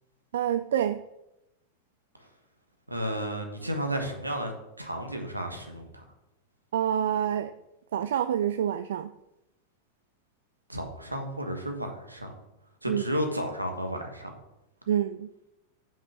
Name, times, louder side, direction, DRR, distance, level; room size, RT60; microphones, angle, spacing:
voice 1, 0.3-1.0 6.7-7.5 7.9-9.1 12.9-13.0 14.9-15.3, right 10 dB, 60° right, 12 dB, 0.3 m, -27 dB
voice 2, 2.9-4.5 4.8-6.0 10.7-12.3 12.8-14.3, equal, 85° right, 4 dB, 1.5 m, -32 dB
7.3 x 5.9 x 5.8 m, 0.90 s
figure-of-eight pair, 90°, 0 cm